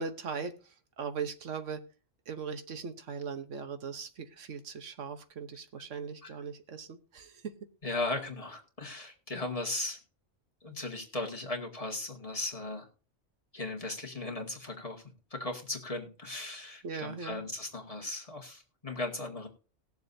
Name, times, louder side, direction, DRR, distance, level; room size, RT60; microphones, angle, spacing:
voice 1, 0.0-1.8 2.3-7.5 16.8-17.5, right 5 dB, 80° right, 8 dB, 1.4 m, -39 dB
voice 2, 7.8-10.0 10.6-12.9 13.5-15.0 15.3-19.5, left 2 dB, 30° left, 0 dB, 2.0 m, -37 dB
19.5 x 7.1 x 2.7 m, 0.35 s
omnidirectional pair, 1.3 m